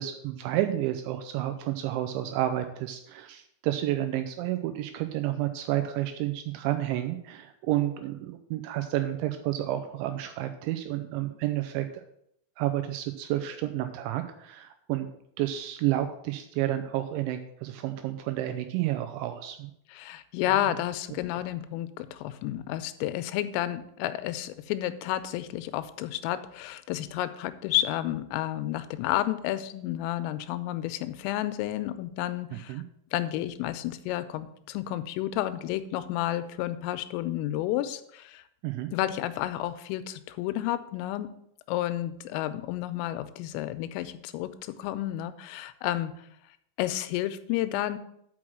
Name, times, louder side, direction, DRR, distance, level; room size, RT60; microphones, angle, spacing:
voice 1, 0.0-12.0 12.6-15.1 15.4-19.7 20.7-20.8 32.5-32.8 38.6-38.9, right 13 dB, 85° right, 8 dB, 2.7 m, -30 dB
voice 2, 19.9-32.8 33.1-38.4 38.9-41.3 41.7-46.1 46.8-48.0, left 14 dB, 90° left, 12 dB, 3.2 m, -31 dB
6.2 x 6.2 x 7.3 m, 0.72 s
omnidirectional pair, 5.8 m